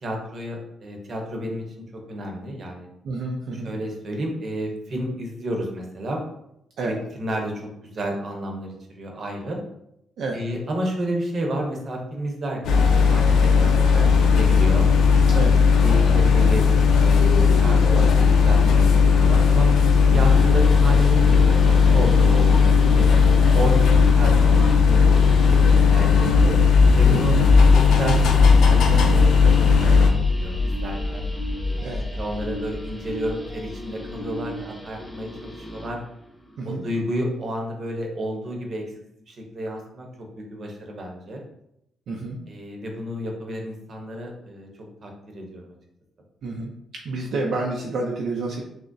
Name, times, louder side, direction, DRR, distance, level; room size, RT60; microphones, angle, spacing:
voice 1, 0.0-1.6 2.1-2.9 3.5-6.2 6.8-9.6 10.3-14.9 15.8-19.7 20.1-23.1 23.5-25.0 25.3-26.6 27.0-27.4 27.7-31.3 31.6-36.0 36.6-38.8 39.3-40.1 40.4-41.4 42.5-44.7 45.0-45.7, right 1 dB, 40° right, 1 dB, 0.8 m, -31 dB
voice 2, 3.0-3.7 6.8-6.9 10.2-10.4 15.3-15.5 20.1-20.2 27.1-27.4 31.8-32.0 36.6-36.8 42.1-42.4 46.4-46.7 47.0-48.6, right 3 dB, 65° right, 0 dB, 0.5 m, -29 dB
sound 1, 12.6-30.1, left 5 dB, 85° left, 0.5 m, -16 dB
sound 2, 20.1-36.0, left 2 dB, ahead, 0.5 m, -25 dB
6.0 x 2.0 x 2.6 m, 0.78 s
cardioid pair, 160°, 0 cm